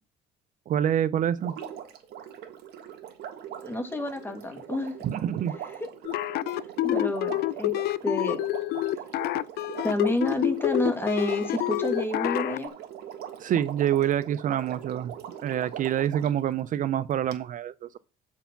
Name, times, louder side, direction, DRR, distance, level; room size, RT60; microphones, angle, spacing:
voice 1, 0.7-1.6 5.0-5.6 13.4-18.0, right 10 dB, 50° right, 0.5 m, -27 dB
Water, 1.4-16.4 17.3-17.4, right 10 dB, 75° right, 1.5 m, -41 dB
voice 2, 3.6-4.9 6.8-7.7 8.0-8.4 9.8-12.7, left 1 dB, 15° left, 1.9 m, -29 dB
sound 1, 6.1-12.6, left 16 dB, 70° left, 0.5 m, -28 dB
7.8 x 4.6 x 5.8 m
cardioid pair, 110°, 17 cm